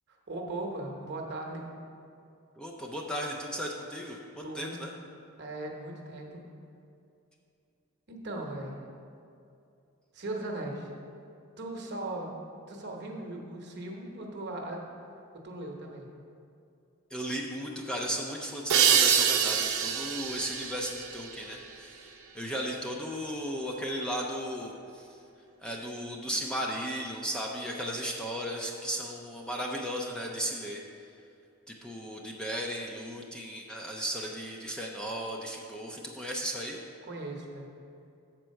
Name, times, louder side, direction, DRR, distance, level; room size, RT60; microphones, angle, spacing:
voice 1, 0.3-1.7 4.4-4.8 5.4-6.3 8.1-8.8 10.1-10.9 11.6-12.3 12.7-14.8 15.4-16.1 37.1-37.7, right 2 dB, 50° right, 0 dB, 1.0 m, -38 dB
voice 2, 2.6-4.9 17.1-25.2 25.6-30.8 31.7-36.8, equal, 5° left, -1 dB, 0.5 m, -35 dB
sound 1, 18.7-22.1, right 7 dB, 85° right, 0.7 m, -26 dB
7.2 x 4.5 x 6.4 m, 2.6 s
head